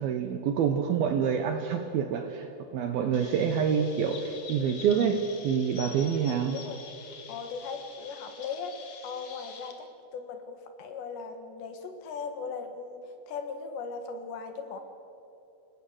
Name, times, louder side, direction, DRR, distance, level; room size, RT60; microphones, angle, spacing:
voice 1, 0.0-2.5 2.7-6.6, right 7 dB, 70° right, 5 dB, 2.4 m, -27 dB
Chirp tweet, 3.1-9.7, left 6 dB, 50° left, 2.3 m, -46 dB
voice 2, 6.0-6.8 7.3-13.0 13.3-14.8, left 5 dB, 70° left, 6 dB, 3.7 m, -38 dB
27.5 x 18.0 x 8.0 m, 2.9 s
omnidirectional pair, 5.6 m